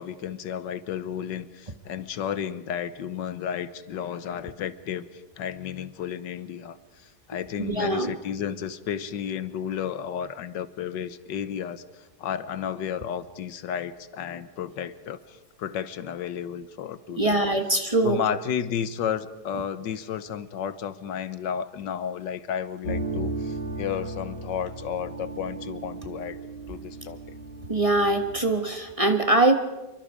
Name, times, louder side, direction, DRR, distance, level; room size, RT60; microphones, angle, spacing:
voice 1, 0.0-17.4 18.0-26.4 26.7-27.2, left 8 dB, 80° left, 14 dB, 1.6 m, -32 dB
voice 2, 7.6-8.1 17.2-18.2 27.7-29.5, right 2 dB, 20° right, 6 dB, 1.3 m, -22 dB
sound 1, 22.8-28.4, right 2 dB, 60° left, 5.2 m, -35 dB
27.5 x 24.0 x 5.0 m, 1.1 s
omnidirectional pair, 1.9 m